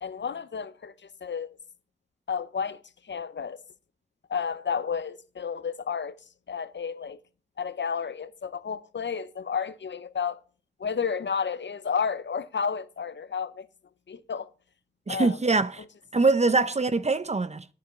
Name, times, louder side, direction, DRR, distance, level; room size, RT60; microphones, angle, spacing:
voice 1, 0.0-1.6 2.3-3.6 4.3-6.2 6.5-7.2 7.6-10.4 10.8-13.7 14.1-14.5 15.1-15.4 15.8-15.9 16.5-16.7, left 6 dB, 75° left, 0.7 m, -31 dB
voice 2, 15.1-15.8 16.1-17.6, right 3 dB, 35° right, 0.6 m, -23 dB
9.3 x 7.2 x 6.6 m
wide cardioid pair, 60°, 19 cm